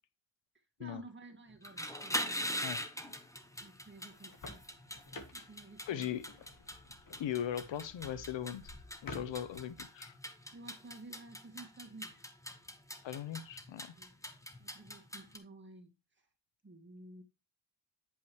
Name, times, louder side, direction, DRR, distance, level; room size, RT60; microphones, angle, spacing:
voice 1, 0.8-2.8 3.6-4.6 5.3-6.2 10.5-12.2 13.9-14.1 14.6-15.9 16.6-17.2, right 2 dB, 25° right, 2.1 m, -53 dB
sound 1, 1.5-15.4, equal, 5° left, 1.3 m, -42 dB
sound 2, 4.1-9.8, left 3 dB, 45° left, 1.6 m, -52 dB
voice 2, 5.9-6.3 7.2-8.7 9.0-10.2 13.0-13.9, left 10 dB, 65° left, 0.8 m, -39 dB
9.9 x 5.5 x 3.1 m
cardioid pair, 70°, 48 cm